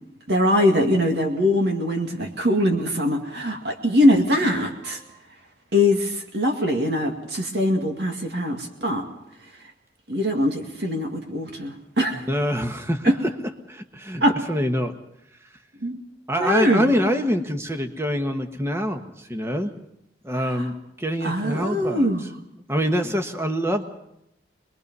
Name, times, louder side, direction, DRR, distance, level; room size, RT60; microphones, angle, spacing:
voice 1, 0.3-5.0 5.7-9.0 10.1-12.2 13.0-13.1 14.2-14.3 15.8-16.0 16.4-16.9 20.4-20.6 21.2-22.2, left 1 dB, 65° right, 3 dB, 2.2 m, -22 dB
voice 2, 4.8-5.2 12.3-13.3 13.7-14.2 14.5-15.0 16.3-19.7 20.2-22.1 22.7-23.8, equal, 15° right, 5 dB, 1.3 m, -25 dB
25.5 x 21.5 x 5.5 m, 0.81 s
head